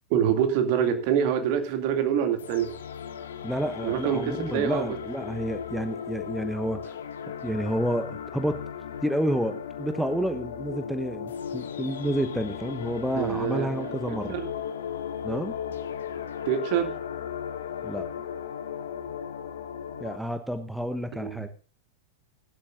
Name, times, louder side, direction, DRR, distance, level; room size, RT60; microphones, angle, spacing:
voice 1, 0.1-2.7 3.8-5.0 13.2-14.5 16.5-17.0 21.1-21.5, right 9 dB, 45° right, 6 dB, 2.5 m, -26 dB
sound 1, 2.4-20.2, left 8 dB, 65° left, 1.1 m, -36 dB
voice 2, 3.4-6.9 7.4-8.6 9.0-14.4 15.2-15.6 17.8-18.1 20.0-21.5, equal, ahead, 9 dB, 1.0 m, -30 dB
20.0 x 12.0 x 2.6 m, 0.37 s
figure-of-eight pair, 90°, 0 cm